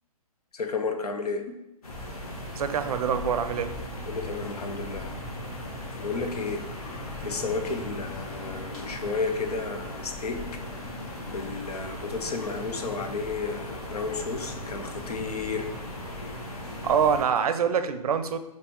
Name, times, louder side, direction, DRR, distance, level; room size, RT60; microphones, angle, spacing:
voice 1, 0.5-1.6 4.1-5.1 6.0-6.6 7.2-10.9 11.3-15.8, left 4 dB, 90° left, 6 dB, 0.7 m, -32 dB
sound 1, 1.8-17.2, left 1 dB, 70° left, 1.2 m, -37 dB
voice 2, 2.6-3.7 16.8-18.4, right 7 dB, 75° right, 10 dB, 0.5 m, -25 dB
5.1 x 3.2 x 2.9 m, 0.91 s
hypercardioid pair, 145°, 19 cm